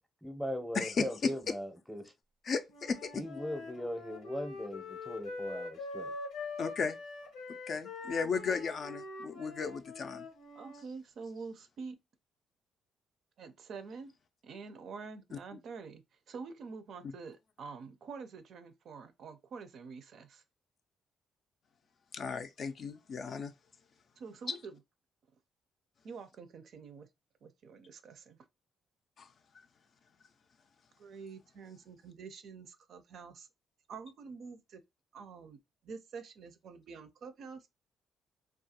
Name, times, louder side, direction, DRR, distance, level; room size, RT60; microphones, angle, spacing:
voice 1, 0.2-2.1 3.1-6.1, equal, ahead, 0.6 m, -39 dB
voice 2, 0.7-1.3 2.4-3.1 6.6-7.0 7.7-10.2 22.1-23.5 29.2-29.3, left 5 dB, 55° left, 0.3 m, -35 dB
Wind instrument woodwind instrument, 2.7-10.8, left 3 dB, 85° left, 0.7 m, -44 dB
voice 3, 10.6-12.0 13.4-14.1 14.4-20.4 24.2-24.8 26.0-27.1 27.4-28.4 31.0-33.5 33.9-34.8 35.1-35.6 35.8-37.7, right 5 dB, 65° right, 0.4 m, -47 dB
2.3 x 2.2 x 2.7 m
cardioid pair, 90°, 0 cm